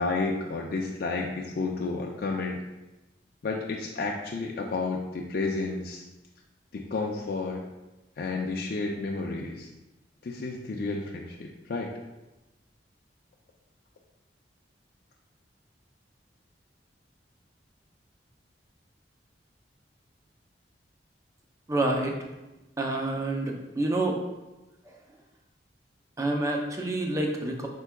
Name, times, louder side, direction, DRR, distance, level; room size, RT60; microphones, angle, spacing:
voice 1, 0.0-2.6 3.4-6.0 6.7-7.6 8.2-9.7 10.2-11.9, left 3 dB, 55° left, 0 dB, 0.4 m, -31 dB
voice 2, 21.7-22.1 22.8-24.2 26.2-27.7, right 2 dB, 20° right, 1 dB, 0.5 m, -28 dB
4.5 x 4.4 x 2.2 m, 1.0 s
head